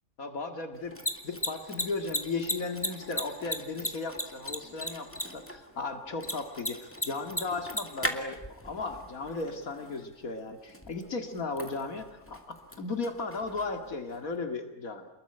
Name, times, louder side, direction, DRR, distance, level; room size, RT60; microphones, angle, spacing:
voice 1, 0.2-1.0 1.2-15.1, left 3 dB, 80° left, 6 dB, 2.5 m, -36 dB
Mechanisms, 0.7-14.4, left 1 dB, 10° left, 2.4 m, -38 dB
28.0 x 21.5 x 9.9 m, 0.92 s
omnidirectional pair, 1.5 m